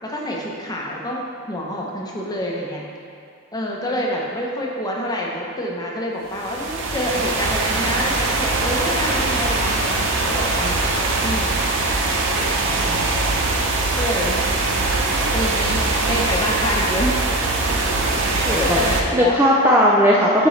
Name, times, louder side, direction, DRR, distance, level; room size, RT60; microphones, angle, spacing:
voice 1, 0.0-2.8 3.5-12.0 12.7-13.2 14.0-14.4 15.3-17.2 18.2-19.4, left 1 dB, 20° left, -2 dB, 0.8 m, -27 dB
sound 1, 6.3-19.0, right 2 dB, 60° right, 0.7 m, -22 dB
voice 2, 18.5-20.5, equal, 10° right, -5 dB, 0.5 m, -17 dB
10.0 x 4.5 x 3.2 m, 2.3 s
head